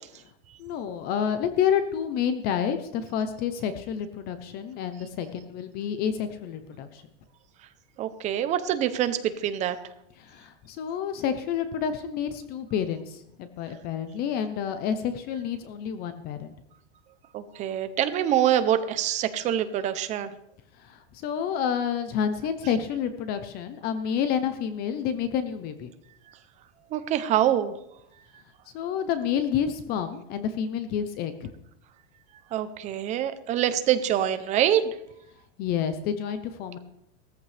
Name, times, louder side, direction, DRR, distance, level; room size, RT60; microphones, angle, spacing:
voice 1, 0.6-7.0 10.2-16.5 20.8-25.9 28.7-31.5 35.6-36.8, left 8 dB, 30° left, 10 dB, 0.7 m, -29 dB
voice 2, 8.0-9.8 17.3-20.3 26.9-27.7 32.5-34.8, right 11 dB, 20° right, 11 dB, 0.6 m, -25 dB
17.5 x 14.0 x 3.4 m, 0.78 s
supercardioid pair, 170°, 33 cm